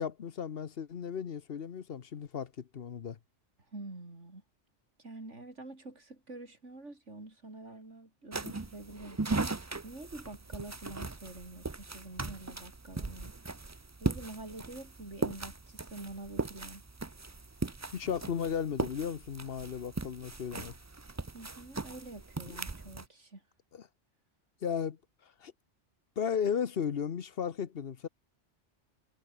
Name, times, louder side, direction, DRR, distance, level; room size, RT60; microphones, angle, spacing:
voice 1, 0.0-3.2 17.9-20.7 23.7-23.9 24.6-25.0 25.4-25.5 26.2-28.1, left 7 dB, 55° left, 1.1 m, -35 dB
voice 2, 3.7-4.4 5.0-9.4 9.8-13.3 14.0-16.8 21.3-23.4, right 2 dB, 80° right, 5.0 m, -47 dB
sound 1, 8.3-23.0, right 3 dB, 20° right, 0.5 m, -38 dB
omnidirectional pair, 1.2 m